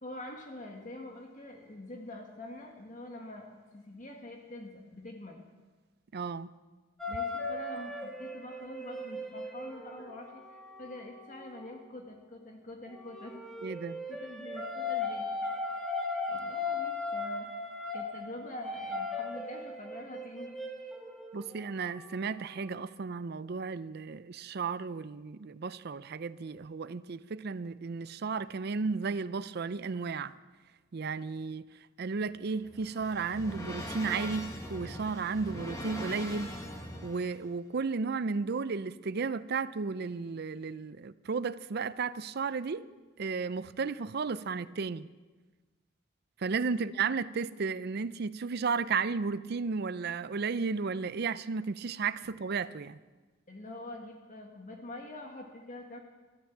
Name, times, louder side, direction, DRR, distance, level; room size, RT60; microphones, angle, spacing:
voice 1, 0.0-3.5 3.7-5.4 7.1-10.4 10.8-13.4 14.1-15.3 15.6-15.9 16.3-20.5 46.7-46.9 53.5-56.0, left 1 dB, 40° left, 1.6 m, -45 dB
voice 2, 6.1-6.5 13.6-14.0 21.3-30.3 30.9-31.7 32.0-36.6 37.0-42.9 43.2-45.1 46.4-53.0, right 4 dB, 50° right, 0.5 m, -34 dB
sound 1, 7.0-11.7 12.9-22.7, left 3 dB, ahead, 1.7 m, -38 dB
sound 2, 32.3-37.4, equal, 15° left, 1.6 m, -41 dB
13.5 x 12.5 x 7.3 m
head